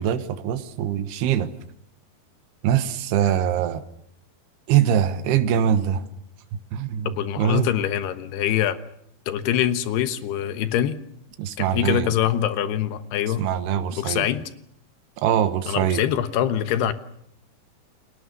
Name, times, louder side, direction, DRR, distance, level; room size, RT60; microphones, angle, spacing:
voice 1, 0.0-1.5 2.6-3.8 4.7-6.0 6.7-7.7 11.4-12.1 13.4-14.3 15.2-16.0, right 9 dB, 85° right, 10 dB, 3.4 m, -23 dB
voice 2, 7.1-8.8 9.3-11.0 11.6-13.4 13.9-14.4 15.7-16.9, left 10 dB, 90° left, 11 dB, 3.3 m, -24 dB
29.5 x 21.0 x 6.8 m, 0.72 s
omnidirectional pair, 4.6 m